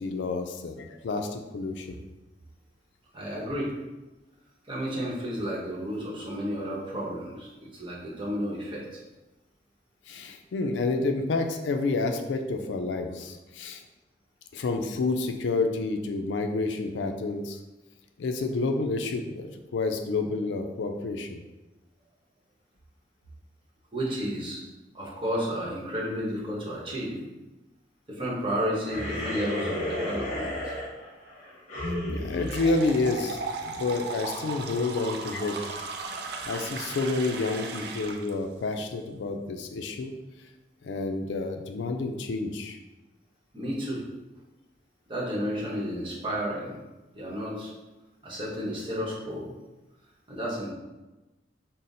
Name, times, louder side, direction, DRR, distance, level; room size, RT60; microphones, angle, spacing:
voice 1, 0.0-1.9 10.1-13.8 14.5-17.6 18.2-21.4 32.1-35.6 36.4-40.1 40.8-42.8, left 3 dB, 80° left, 5 dB, 0.4 m, -29 dB
voice 2, 3.1-3.7 4.7-9.0 23.9-24.6 24.9-27.2 28.1-30.7 36.0-36.3 43.5-44.0 45.1-46.8 47.1-47.7 48.2-49.5 50.3-50.7, equal, 30° right, -5 dB, 0.9 m, -32 dB
sound 1, 28.8-33.6, left 1 dB, 45° left, 1.1 m, -34 dB
sound 2, 32.4-38.3, right 4 dB, 65° right, 0.4 m, -36 dB
5.6 x 2.0 x 2.6 m, 1.1 s
head